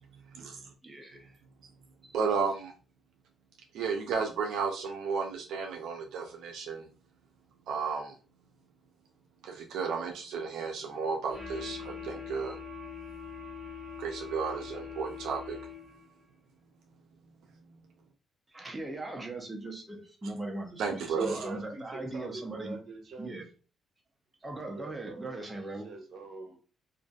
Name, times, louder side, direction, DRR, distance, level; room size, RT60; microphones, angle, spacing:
voice 1, 0.3-0.7 2.1-2.7 3.7-6.9 7.7-8.1 9.4-12.6 14.0-15.6 20.8-21.3, right 5 dB, 80° right, 2 dB, 0.4 m, -33 dB
voice 2, 0.8-1.4 2.0-2.2 18.5-22.8 23.2-23.4 24.4-25.9, right 2 dB, 15° right, 1 dB, 0.6 m, -39 dB
sound 1, 11.3-16.1, left 6 dB, 5° left, 1.0 m, -43 dB
voice 3, 21.1-23.3 24.7-25.6 25.8-26.6, right 3 dB, 60° right, 2 dB, 0.8 m, -41 dB
2.5 x 2.4 x 2.2 m, 0.36 s
cardioid pair, 90°, 0 cm